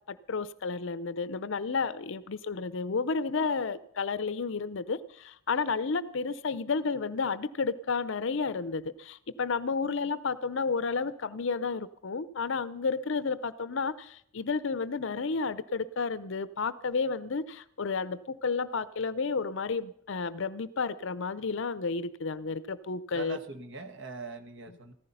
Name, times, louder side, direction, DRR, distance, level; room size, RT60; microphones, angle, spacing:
voice 1, 0.1-23.4, left 4 dB, 60° left, 16 dB, 0.6 m, -31 dB
voice 2, 23.1-24.9, right 4 dB, 55° right, 7 dB, 1.5 m, -42 dB
15.5 x 14.5 x 5.5 m, 0.67 s
head